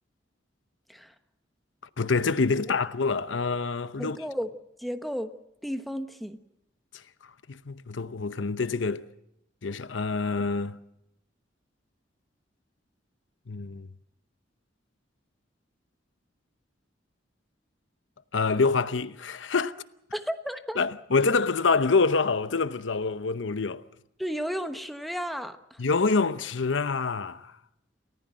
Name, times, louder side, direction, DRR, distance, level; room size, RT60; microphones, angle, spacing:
voice 1, 2.0-4.2 7.5-9.1 9.6-10.8 13.5-13.9 18.3-19.7 20.8-23.8 25.8-27.5, left 4 dB, 85° left, 0.8 m, -26 dB
voice 2, 4.0-4.5 4.8-5.3 5.6-6.4 20.1-20.8 24.2-25.8, equal, ahead, 1.1 m, -33 dB
29.0 x 14.5 x 7.6 m
head